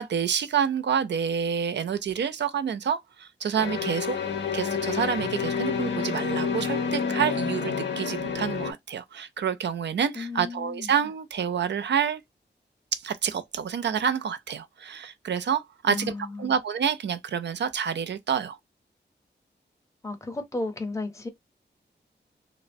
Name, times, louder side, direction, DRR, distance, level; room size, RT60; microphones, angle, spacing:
voice 1, 0.0-4.2 4.5-12.2 12.9-16.1 16.4-18.6, right 7 dB, 75° right, 0.4 m, -28 dB
sound 1, 3.6-8.7, left 6 dB, 80° left, 0.6 m, -29 dB
voice 2, 10.1-10.9 15.9-16.5 20.0-21.3, left 2 dB, 15° left, 0.6 m, -34 dB
2.7 x 2.1 x 2.5 m
wide cardioid pair, 110°, 18 cm